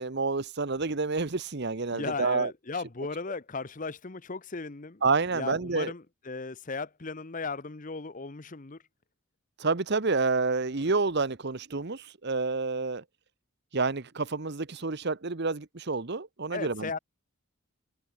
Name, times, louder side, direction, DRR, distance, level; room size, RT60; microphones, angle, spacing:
voice 1, 0.0-2.5 5.0-5.9 9.6-13.0 13.7-17.0, right 3 dB, 50° right, 1.0 m, -29 dB
voice 2, 1.9-5.0 5.3-8.8 16.5-17.0, left 4 dB, 35° left, 0.9 m, -36 dB
head